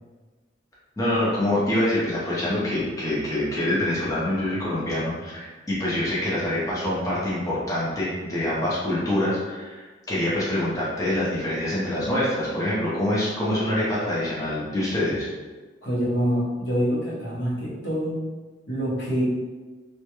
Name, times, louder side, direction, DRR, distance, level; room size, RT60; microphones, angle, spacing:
voice 1, 1.0-15.3, left 1 dB, 20° left, -8 dB, 0.6 m, -25 dB
voice 2, 15.8-18.2 18.7-19.2, equal, 70° left, -7 dB, 0.8 m, -26 dB
2.2 x 2.1 x 2.9 m, 1.3 s
head